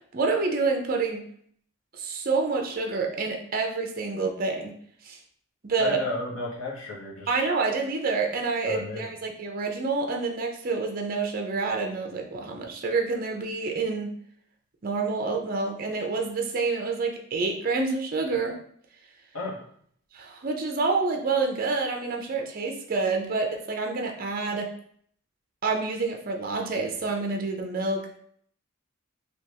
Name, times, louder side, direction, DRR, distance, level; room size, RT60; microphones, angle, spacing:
voice 1, 0.1-1.2 1.9-4.7 5.0-5.2 5.6-6.0 7.3-14.1 14.8-18.6 20.1-24.7 25.6-28.2, right 4 dB, 40° right, 2 dB, 0.5 m, -28 dB
voice 2, 5.8-7.4 8.7-9.1 19.3-19.6, left 3 dB, 75° left, -3 dB, 1.0 m, -33 dB
3.4 x 2.9 x 2.8 m, 0.63 s
head